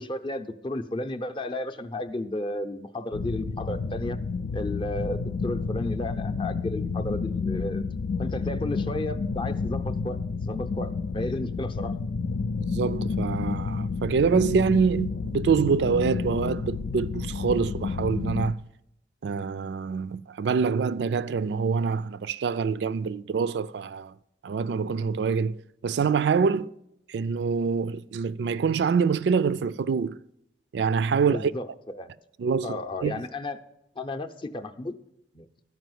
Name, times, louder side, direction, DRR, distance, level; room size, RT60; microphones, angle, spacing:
voice 1, 0.0-4.2 4.5-7.8 8.2-12.0 31.1-31.7 31.9-32.1 32.6-33.6 34.0-35.0 35.3-35.5, left 1 dB, 30° left, 0.6 m, -33 dB
sound 1, 3.1-18.5, left 4 dB, 75° left, 0.4 m, -30 dB
voice 2, 12.6-18.6 19.2-24.1 24.4-26.7 27.1-30.2 30.7-31.5 32.4-33.2, right 5 dB, 70° right, 0.3 m, -25 dB
12.5 x 4.9 x 7.8 m
head